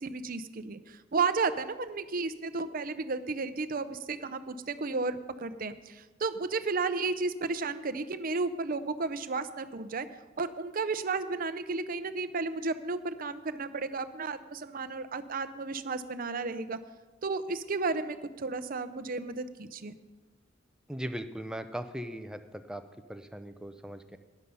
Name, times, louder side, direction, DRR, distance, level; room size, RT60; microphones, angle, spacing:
voice 1, 0.0-10.1 10.4-16.8 17.2-19.9, right 4 dB, 50° right, 11 dB, 0.7 m, -33 dB
voice 2, 20.9-22.8 23.1-24.2, equal, 5° right, 8 dB, 0.6 m, -39 dB
12.5 x 10.0 x 5.5 m, 1.2 s
head